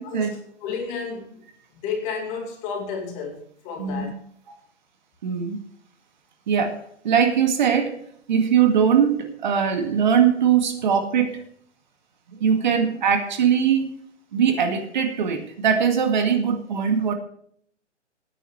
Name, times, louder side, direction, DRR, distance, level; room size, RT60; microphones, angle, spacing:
voice 1, 0.1-1.4 1.7-4.1, left 5 dB, 20° left, 2 dB, 2.3 m, -32 dB
voice 2, 3.8-4.1 5.2-5.6 6.5-8.0 8.3-11.4 12.4-14.0 14.3-17.1, right 7 dB, 40° right, 6 dB, 2.1 m, -21 dB
19.5 x 10.0 x 3.2 m, 0.63 s
hypercardioid pair, 155°, 36 cm